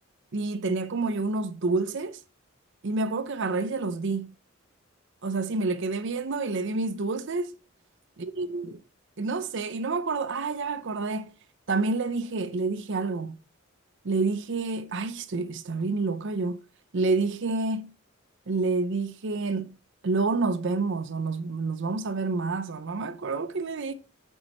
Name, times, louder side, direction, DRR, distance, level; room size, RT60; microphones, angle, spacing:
voice 1, 0.3-2.2 2.8-4.3 5.2-7.5 8.4-8.7 9.2-11.3 11.7-13.4 14.0-16.6 16.9-17.9 18.5-19.8 20.0-23.9, right 3 dB, 60° right, 0.6 m, -28 dB
9.2 x 5.3 x 3.0 m
head